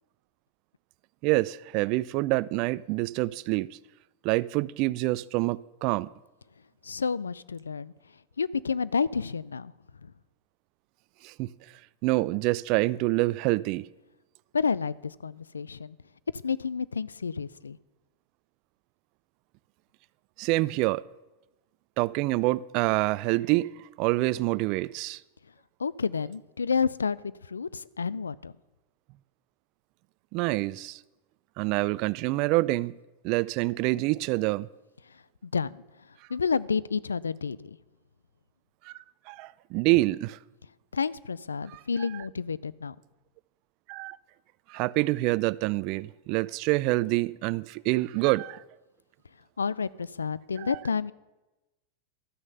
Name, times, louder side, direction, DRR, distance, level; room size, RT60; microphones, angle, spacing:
voice 1, 1.2-3.7 4.2-6.1 11.2-11.5 12.0-13.9 20.4-21.0 22.0-25.2 30.3-31.0 31.6-32.9 33.2-34.7 38.9-39.0 39.3-40.4 41.7-41.8 43.9-44.2 44.7-48.6 50.6-50.8, right 20 dB, 50° right, 0.3 m, -26 dB
voice 2, 6.8-7.9 8.4-9.7 10.0-10.1 14.5-16.0 16.4-17.8 25.8-28.5 35.4-35.7 36.3-37.8 40.9-43.0 49.6-51.1, left 5 dB, 90° left, 0.3 m, -30 dB
12.5 x 6.4 x 6.6 m
hypercardioid pair, 95°, 0 cm